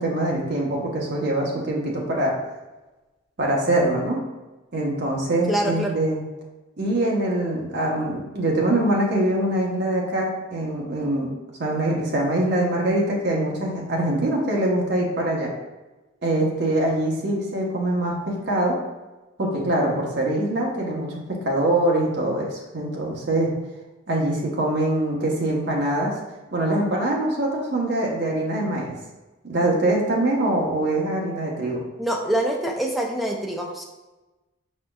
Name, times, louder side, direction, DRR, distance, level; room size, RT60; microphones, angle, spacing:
voice 1, 0.0-2.4 3.4-4.2 4.7-6.2 6.8-11.3 11.6-15.5 16.2-18.8 19.4-23.5 24.1-26.1 26.5-28.9 29.4-31.8, right 1 dB, 55° right, -2 dB, 0.9 m, -23 dB
voice 2, 5.5-5.9 32.0-33.8, right 1 dB, ahead, 0 dB, 0.4 m, -25 dB
5.0 x 4.2 x 2.3 m, 1.1 s
head